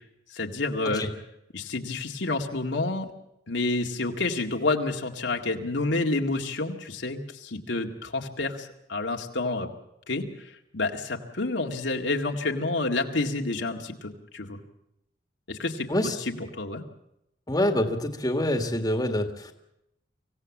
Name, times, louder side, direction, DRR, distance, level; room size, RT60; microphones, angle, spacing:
voice 1, 0.3-1.0 1.5-3.1 3.5-9.7 10.1-14.6 15.5-15.9 16.3-16.8, left 2 dB, 80° left, 2 dB, 2.0 m, -29 dB
voice 2, 17.5-19.5, left 1 dB, 20° left, 5 dB, 1.8 m, -26 dB
25.0 x 16.5 x 7.3 m, 0.82 s
head